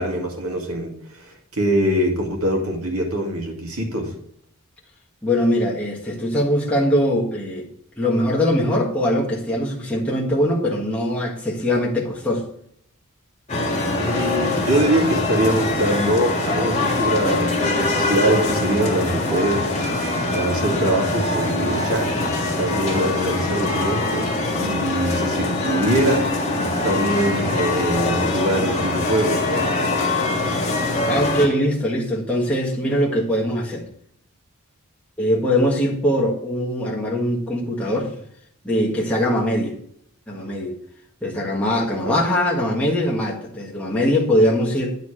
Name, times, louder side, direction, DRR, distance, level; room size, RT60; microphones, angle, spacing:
voice 1, 0.0-4.1 13.9-19.7 20.3-22.2 22.6-24.3 24.6-26.3 26.8-29.7 42.0-42.2, right 1 dB, 80° right, 1 dB, 2.1 m, -23 dB
voice 2, 5.2-7.7 8.0-12.5 31.0-33.9 35.2-38.2 38.6-39.7 40.3-40.8 41.2-45.0, left 1 dB, 5° left, -5 dB, 1.6 m, -21 dB
sound 1, 13.5-31.5, left 2 dB, 30° left, 1.7 m, -23 dB
9.4 x 4.2 x 6.4 m, 0.68 s
head